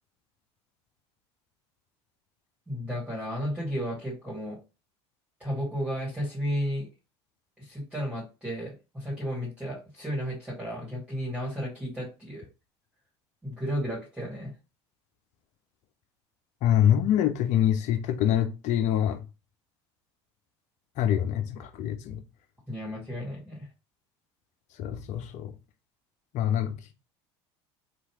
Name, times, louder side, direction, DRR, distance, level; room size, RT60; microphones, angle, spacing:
voice 1, 2.7-4.6 5.4-6.9 7.6-12.5 13.4-14.5 22.7-23.7, equal, 10° right, 1.7 m, -33 dB
voice 2, 16.6-19.2 21.0-22.2 24.8-25.5 26.3-26.7, left 10 dB, 55° left, 0.6 m, -25 dB
3.0 x 2.4 x 2.9 m
hypercardioid pair, 75°, 14 cm